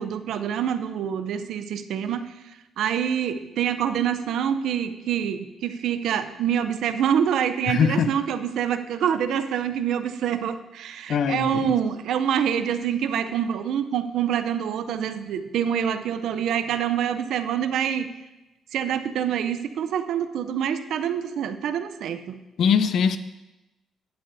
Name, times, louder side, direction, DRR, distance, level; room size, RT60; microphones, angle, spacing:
voice 1, 0.0-2.3 2.8-18.1 18.7-22.4, right 8 dB, 75° right, 10 dB, 0.5 m, -26 dB
voice 2, 7.7-8.1 11.1-11.7 22.6-23.2, left 7 dB, 65° left, 11 dB, 0.6 m, -22 dB
11.0 x 9.5 x 2.7 m, 1.0 s
cardioid pair, 90°, 0 cm